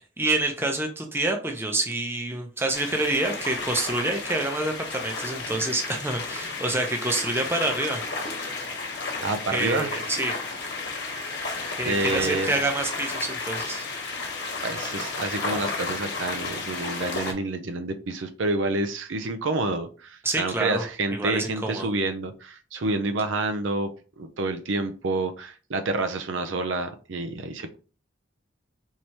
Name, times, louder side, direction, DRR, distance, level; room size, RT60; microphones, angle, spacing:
voice 1, 0.2-8.0 9.5-10.3 11.8-13.9 20.2-20.8 21.1-21.9, right 2 dB, 10° right, 3 dB, 0.6 m, -27 dB
sound 1, 2.7-17.3, left 3 dB, 55° left, 1.3 m, -32 dB
voice 2, 9.2-9.9 11.8-12.5 14.6-23.9 24.2-27.8, right 2 dB, 75° right, 7 dB, 0.6 m, -28 dB
4.5 x 3.3 x 2.8 m, 0.36 s
head